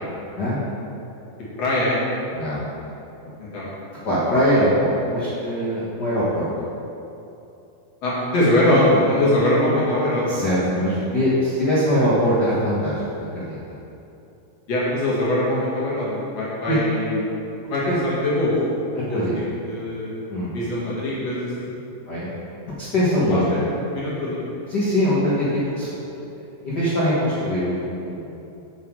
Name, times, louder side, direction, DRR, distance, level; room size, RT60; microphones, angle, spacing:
voice 1, 1.6-2.0 3.4-3.7 8.0-10.5 10.7-11.0 14.7-17.3 17.7-18.6 19.1-21.7 23.3-23.6 23.9-24.4, left 1 dB, 50° left, -7 dB, 2.7 m, -22 dB
voice 2, 4.0-6.5 10.3-13.0 13.3-13.7 16.7-16.8 17.9-18.0 19.1-19.4 20.3-20.5 22.1-22.3 22.8-23.5 24.7-25.5 25.8-26.1 26.6-28.3, equal, 80° left, -9 dB, 0.9 m, -22 dB
8.4 x 7.3 x 4.7 m, 2.8 s
omnidirectional pair, 4.4 m